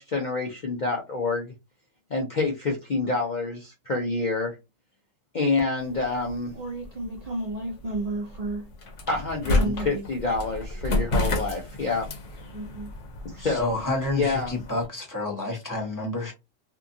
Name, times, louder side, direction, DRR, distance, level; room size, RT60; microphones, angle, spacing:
voice 1, 0.0-1.5 2.1-4.6 5.3-6.5 9.1-12.1 13.2-13.7 14.1-14.5, left 3 dB, 50° left, 0.6 m, -27 dB
sound 1, 5.8-14.9, left 2 dB, 70° left, 1.1 m, -32 dB
voice 2, 6.5-8.7 9.4-10.1 12.5-12.9, right 2 dB, 50° right, 0.5 m, -32 dB
voice 3, 13.4-16.3, left 2 dB, 15° left, 0.9 m, -29 dB
2.8 x 2.4 x 2.6 m
omnidirectional pair, 1.3 m